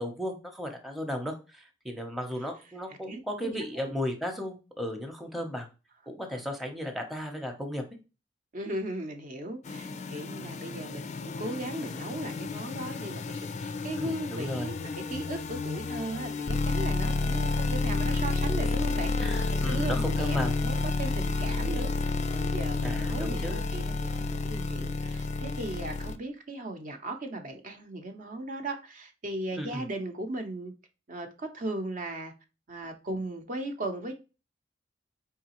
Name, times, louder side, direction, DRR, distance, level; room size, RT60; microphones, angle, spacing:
voice 1, 0.0-5.7 6.1-7.8 10.4-10.5 14.0-14.7 19.2-20.9 22.8-23.6 29.6-29.8, equal, ahead, 0.7 m, -35 dB
voice 2, 3.1-3.9 8.5-30.7 31.1-32.3 32.7-34.1, right 1 dB, 45° right, 0.7 m, -37 dB
sound 1, 9.6-26.2, left 3 dB, 40° left, 0.4 m, -30 dB
4.7 x 3.5 x 2.9 m
head